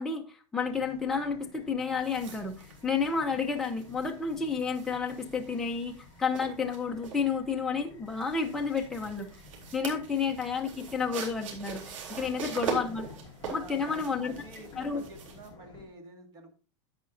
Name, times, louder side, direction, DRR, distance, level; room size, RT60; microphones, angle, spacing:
voice 1, 0.0-9.3 9.7-13.1 13.5-14.3 14.8-15.0, left 5 dB, 5° left, 1 dB, 0.8 m, -31 dB
sound 1, 0.6-15.9, left 5 dB, 25° left, 2.0 m, -53 dB
sound 2, 2.0-15.5, right 6 dB, 90° right, 3.9 m, -42 dB
voice 2, 12.1-12.6 13.4-16.5, right 2 dB, 25° right, 4 dB, 2.0 m, -49 dB
11.0 x 8.1 x 2.6 m, 0.35 s
supercardioid pair, 165°, 16 cm